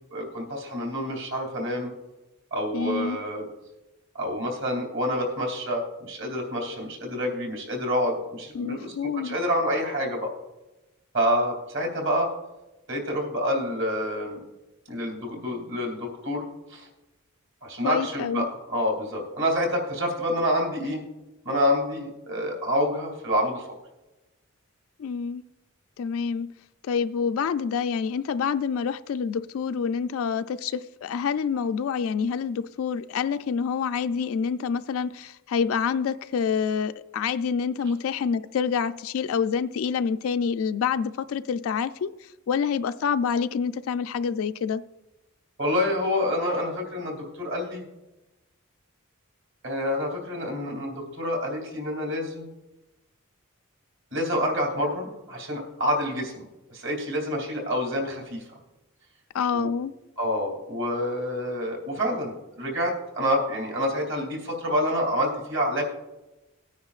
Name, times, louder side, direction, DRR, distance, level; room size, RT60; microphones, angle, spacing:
voice 1, 0.1-1.9 2.5-3.5 4.1-10.3 11.1-12.3 12.9-14.4 14.9-16.9 17.6-21.0 21.4-23.7 45.6-47.8 49.6-52.5 54.1-56.4 56.7-58.4 59.5-59.7 60.2-65.8, equal, 60° right, 0 dB, 2.6 m, -27 dB
voice 2, 2.7-3.2 8.5-9.4 17.8-18.5 25.0-25.4 26.0-26.5 26.8-44.8 59.3-59.9, left 6 dB, 70° left, 10 dB, 0.3 m, -27 dB
19.0 x 9.5 x 2.4 m, 1.0 s
head